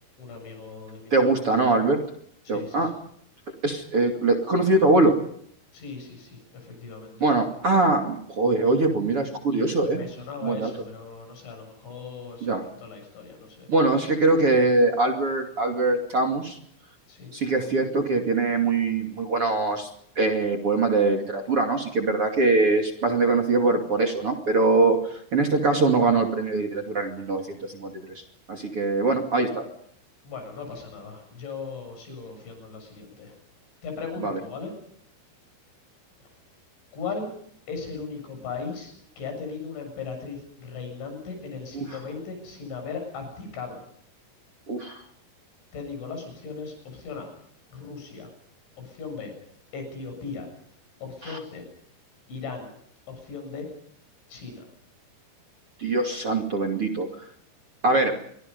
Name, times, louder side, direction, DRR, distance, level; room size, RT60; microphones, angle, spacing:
voice 1, 0.2-1.7 2.5-3.0 5.7-7.3 9.5-13.7 17.1-17.4 30.2-33.4 33.8-34.7 36.9-37.3 37.7-43.8 45.7-47.3 47.7-48.3 48.8-49.3 49.7-50.5 51.0-51.7 52.3-52.7 53.1-53.7 54.3-54.7, left 5 dB, 75° left, 5 dB, 9.5 m, -38 dB
voice 2, 1.1-2.0 2.5-2.9 3.6-5.2 7.2-10.1 10.4-10.7 12.4-12.6 13.7-16.6 17.3-19.9 20.2-27.9 28.5-29.6 34.2-34.4 41.7-41.8 44.7-45.0 51.2-51.4 55.8-57.1 57.8-58.2, right 3 dB, 35° right, 5 dB, 2.8 m, -22 dB
27.5 x 24.5 x 5.4 m, 0.66 s
omnidirectional pair, 5.3 m